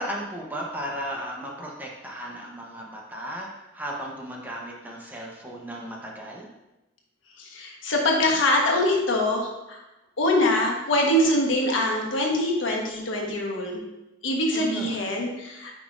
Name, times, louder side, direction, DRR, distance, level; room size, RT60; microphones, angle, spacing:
voice 1, 0.0-6.5 14.5-15.0, equal, 10° right, -2 dB, 1.0 m, -35 dB
voice 2, 7.4-9.8 10.2-13.8 14.2-15.7, left 1 dB, 75° left, 0 dB, 1.3 m, -24 dB
8.9 x 5.2 x 2.6 m, 0.98 s
head